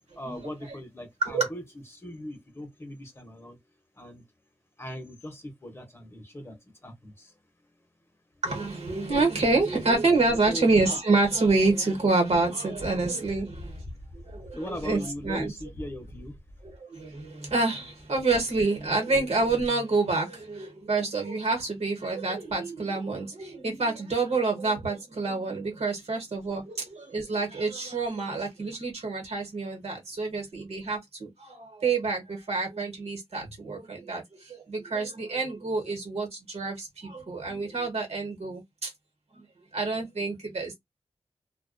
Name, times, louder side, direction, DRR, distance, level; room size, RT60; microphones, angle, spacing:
voice 1, 0.1-1.6 1.9-3.6 4.0-4.2 4.8-7.3 10.4-10.7 13.9-14.0 14.3-16.4, equal, 25° left, 0.7 m, -39 dB
voice 2, 8.4-13.8 14.1-15.5 16.6-38.9 39.4-39.5 39.7-40.7, right 3 dB, 70° right, 1.0 m, -27 dB
2.3 x 2.2 x 2.4 m
wide cardioid pair, 120°, 11 cm